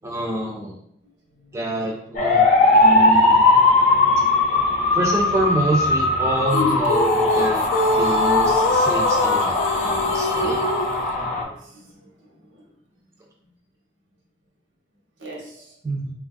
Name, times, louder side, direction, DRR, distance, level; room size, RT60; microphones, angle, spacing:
voice 1, 0.0-0.8 1.5-2.5 2.7-3.4 4.9-7.6 7.9-10.6 15.8-16.1, right 1 dB, 15° right, -2 dB, 0.4 m, -26 dB
voice 2, 1.0-1.6 11.1-12.1 15.2-15.8, right 1 dB, 80° right, -2 dB, 0.9 m, -43 dB
sound 1, 2.2-11.4, left 2 dB, 40° left, 0.6 m, -19 dB
sound 2, 6.5-11.0, left 2 dB, 80° left, 0.3 m, -23 dB
3.8 x 2.3 x 2.5 m, 0.71 s
head